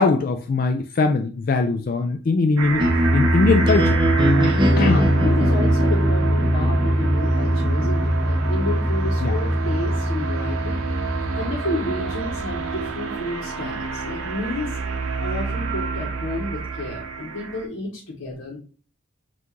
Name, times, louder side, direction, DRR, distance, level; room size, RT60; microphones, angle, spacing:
voice 1, 0.0-2.9 3.1-4.0 4.8-5.0 9.2-9.4, left 3 dB, 45° left, 6 dB, 0.3 m, -20 dB
sound 1, 2.6-17.7, right 4 dB, 90° right, 0.7 m, -29 dB
sound 2, 2.8-12.9, equal, 20° right, 0.8 m, -21 dB
voice 2, 4.7-10.8 11.3-14.8 15.2-18.6, left 2 dB, 75° left, -4 dB, 1.0 m, -31 dB
5.6 x 2.5 x 3.0 m, 0.39 s
head